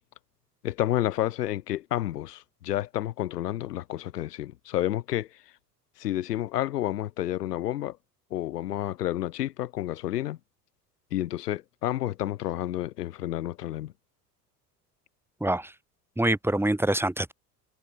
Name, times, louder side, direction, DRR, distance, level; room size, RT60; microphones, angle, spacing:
voice 1, 0.6-5.3 6.0-8.0 8.3-10.4 11.1-13.9, left 13 dB, 75° left, 1.5 m, -30 dB
voice 2, 15.4-15.7 16.2-17.3, right 1 dB, 5° right, 3.2 m, -25 dB
figure-of-eight pair, 65°, 48 cm